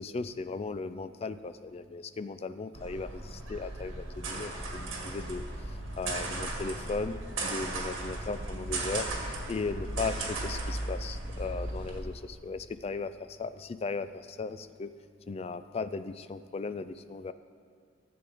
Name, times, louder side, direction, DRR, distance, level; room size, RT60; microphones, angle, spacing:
voice 1, 0.0-5.4 6.0-9.1 9.5-14.9 15.3-17.3, left 4 dB, 30° left, 12 dB, 0.3 m, -37 dB
sound 1, 2.7-12.0, right 2 dB, 75° right, 1.7 m, -36 dB
15.0 x 7.8 x 3.5 m, 2.1 s
head